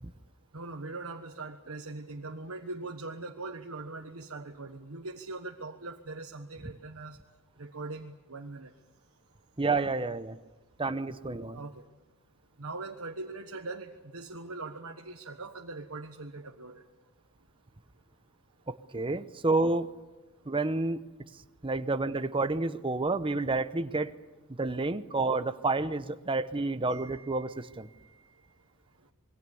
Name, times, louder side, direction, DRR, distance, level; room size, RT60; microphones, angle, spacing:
voice 1, 0.5-7.2 7.6-8.7 9.6-9.7 11.5-11.8 12.6-16.8 26.9-27.7, right 3 dB, 85° right, 2 dB, 1.3 m, -41 dB
voice 2, 9.6-10.4 10.8-11.6 18.7-19.9 20.5-21.0 21.6-24.1 24.6-27.9, right 3 dB, 25° right, 11 dB, 0.9 m, -29 dB
27.0 x 22.0 x 7.1 m, 1.1 s
head